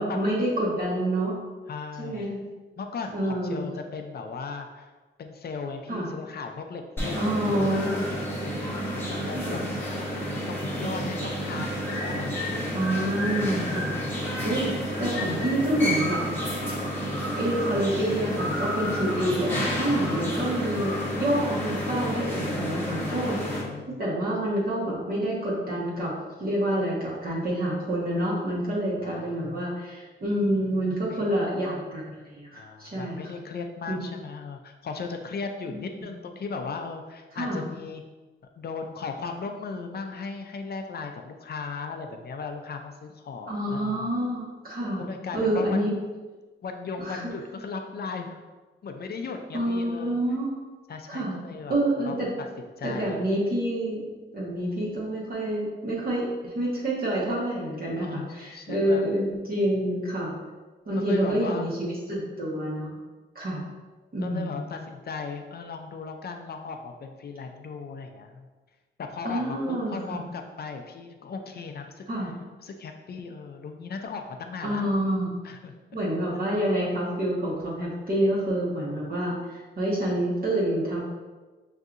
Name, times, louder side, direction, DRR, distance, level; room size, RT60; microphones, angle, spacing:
voice 1, 0.0-1.4 2.0-2.4 3.1-3.6 5.9-6.1 7.1-8.0 9.3-9.6 12.7-13.9 14.4-14.7 15.0-16.2 17.4-23.4 24.0-26.1 26.4-33.2 33.9-34.0 35.7-35.8 37.3-37.6 43.5-45.0 45.3-45.9 47.0-47.2 49.5-50.5 51.1-51.4 51.7-52.3 52.8-54.0 54.3-60.3 60.9-62.9 63.3-63.6 64.1-64.6 69.2-70.2 72.1-72.3 74.6-75.3 75.9-79.3 79.8-81.0, right 1 dB, 45° right, -6 dB, 1.2 m, -27 dB
voice 2, 1.7-2.3 2.8-4.9 5.2-8.2 8.9-9.6 10.5-12.7 14.8-14.9 23.1-24.0 29.0-29.7 31.1-31.3 32.5-38.0 38.6-44.1 45.0-46.0 46.6-48.4 48.8-50.2 50.9-51.8 52.0-52.5 52.8-53.2 58.0-59.1 60.9-61.7 64.2-68.5 69.0-72.3 72.6-74.9 75.4-75.7, left 4 dB, 50° left, 5 dB, 0.5 m, -37 dB
sound 1, 7.0-23.6, equal, 10° left, 0.9 m, -30 dB
5.8 x 2.7 x 2.5 m, 1.3 s
cardioid pair, 95°, 20 cm